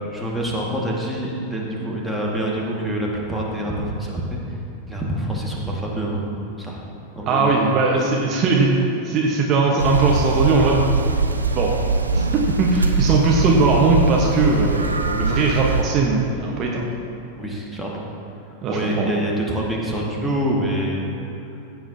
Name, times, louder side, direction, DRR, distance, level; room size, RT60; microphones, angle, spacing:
voice 1, 0.1-4.4 4.9-6.3 6.6-6.8 7.1-7.5 8.0-8.1 17.4-18.0 18.7-21.1, right 1 dB, ahead, -3 dB, 1.9 m, -26 dB
voice 2, 7.3-8.7 9.0-10.8 11.5-11.7 12.1-16.8 18.6-19.1, right 3 dB, 35° right, -1 dB, 1.2 m, -19 dB
sound 1, 9.8-15.8, right 4 dB, 80° right, 0.5 m, -22 dB
15.0 x 8.5 x 2.8 m, 2.9 s
figure-of-eight pair, 90°, 0 cm